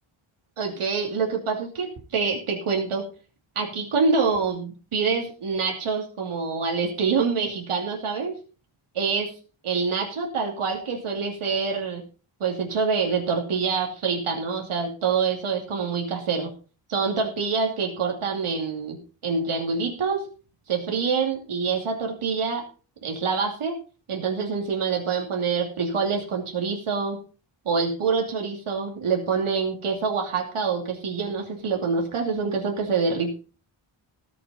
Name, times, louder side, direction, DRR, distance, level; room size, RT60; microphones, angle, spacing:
voice 1, 0.6-3.0 3.6-8.4 8.9-9.3 9.6-12.0 12.4-16.5 16.9-20.2 20.7-22.6 23.0-23.8 24.1-27.2 27.6-33.3, right 5 dB, 85° right, 1 dB, 2.7 m, -26 dB
19.5 x 6.8 x 4.2 m, 0.37 s
wide cardioid pair, 180°, 49 cm